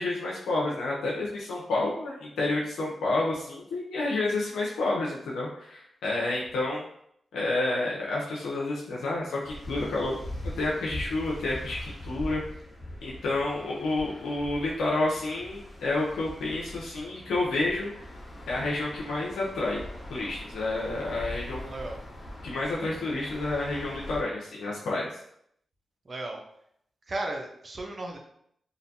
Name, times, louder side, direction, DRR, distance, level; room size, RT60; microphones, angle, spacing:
voice 1, 0.0-6.8 7.3-10.2 10.4-12.4 13.0-18.1 18.5-19.8 20.1-21.7 22.4-25.1, left 2 dB, 85° left, -4 dB, 0.4 m, -29 dB
sound 1, 9.4-24.2, left 1 dB, 45° left, 0.8 m, -42 dB
voice 2, 21.5-22.0 26.1-26.4 27.1-28.2, right 2 dB, 50° right, 2 dB, 0.5 m, -35 dB
2.5 x 2.1 x 2.7 m, 0.71 s
supercardioid pair, 40°, 0 cm